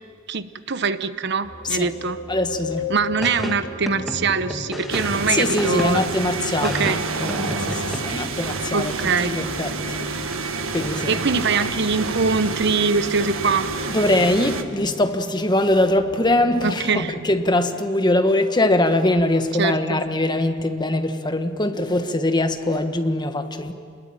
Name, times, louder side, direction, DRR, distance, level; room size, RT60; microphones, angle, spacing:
voice 1, 0.3-2.2 2.9-6.0 6.6-7.0 8.7-9.4 11.1-13.7 16.6-17.1 19.6-20.0, right 4 dB, 55° right, 12 dB, 1.0 m, -23 dB
sound 1, 1.4-17.4, left 2 dB, 65° left, 3.6 m, -38 dB
voice 2, 2.3-2.9 5.3-8.9 9.2-11.2 13.9-23.7, left 1 dB, 20° left, 7 dB, 1.4 m, -22 dB
sound 2, 3.2-6.2 6.6-8.0, equal, ahead, 1.8 m, -31 dB
sound 3, 4.9-14.6, right 4 dB, 85° right, 1.7 m, -29 dB
26.5 x 21.5 x 9.0 m, 2.1 s
head